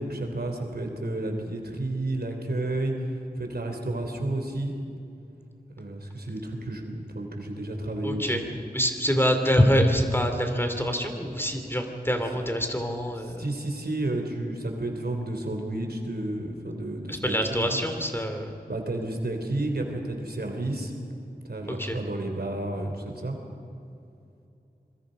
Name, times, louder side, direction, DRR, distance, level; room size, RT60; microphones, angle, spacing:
voice 1, 0.0-2.9 3.4-4.7 5.8-8.4 13.2-17.8 18.7-20.9 21.5-23.4, right 2 dB, 70° right, 3 dB, 3.5 m, -31 dB
voice 2, 8.0-8.4 8.7-13.4 17.1-18.5 21.7-22.0, equal, 15° left, 5 dB, 2.8 m, -25 dB
26.0 x 22.5 x 5.3 m, 2.7 s
wide cardioid pair, 45°, 17 cm